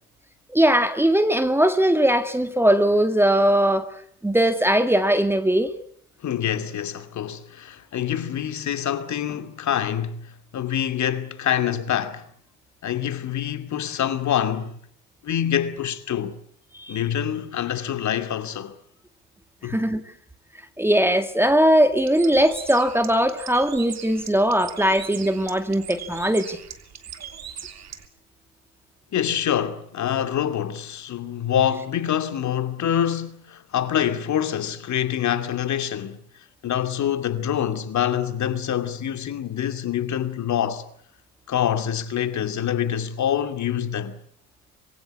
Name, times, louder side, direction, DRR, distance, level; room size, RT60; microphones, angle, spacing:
voice 1, 0.5-3.9 4.2-5.7 16.7-17.0 19.6-20.0 20.8-26.6, right 1 dB, 5° right, 1.9 m, -20 dB
voice 2, 6.2-12.2 12.8-14.8 15.2-16.4 16.9-18.8 19.6-19.8 29.1-36.2 36.6-40.8 41.5-44.2, left 10 dB, 35° left, 2.5 m, -26 dB
Bird, 22.0-28.1, right 8 dB, 35° right, 3.2 m, -40 dB
26.0 x 23.0 x 8.4 m
figure-of-eight pair, 70°, 46 cm